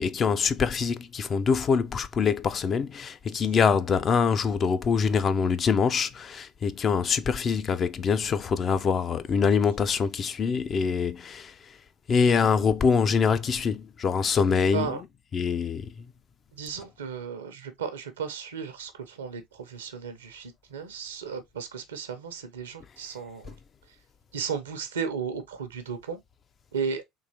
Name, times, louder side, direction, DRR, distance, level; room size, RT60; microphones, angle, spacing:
voice 1, 0.0-11.8 12.1-15.0 15.3-16.1 23.5-23.6, left 6 dB, 40° left, 0.4 m, -24 dB
voice 2, 16.5-23.5 24.3-26.2 26.7-27.0, right 6 dB, 85° right, 0.7 m, -34 dB
3.7 x 2.9 x 2.8 m
hypercardioid pair, 70°, 0 cm